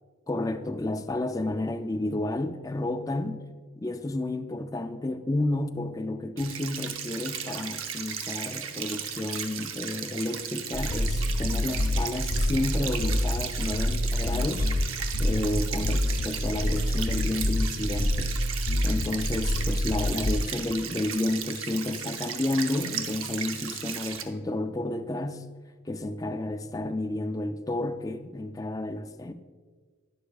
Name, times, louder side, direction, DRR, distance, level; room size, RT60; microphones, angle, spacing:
voice 1, 0.3-3.4 3.8-14.7 15.2-18.4 18.8-25.5 25.9-29.3, left 2 dB, 15° left, 0.4 m, -31 dB
sound 1, 6.4-24.2, right 7 dB, 80° right, 0.8 m, -36 dB
sound 2, 10.7-20.4, left 1 dB, 85° left, 0.8 m, -27 dB
11.5 x 10.5 x 2.4 m
head